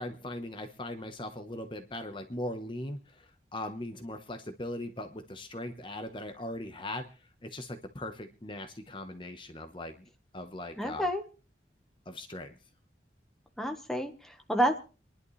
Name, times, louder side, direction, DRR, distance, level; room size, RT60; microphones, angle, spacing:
voice 1, 0.0-7.1 7.4-10.1 10.3-11.1 12.1-12.5, left 1 dB, 30° left, 7 dB, 1.1 m, -39 dB
voice 2, 10.8-11.2 13.6-14.8, equal, ahead, 4 dB, 1.3 m, -29 dB
26.5 x 11.0 x 3.2 m, 0.34 s
head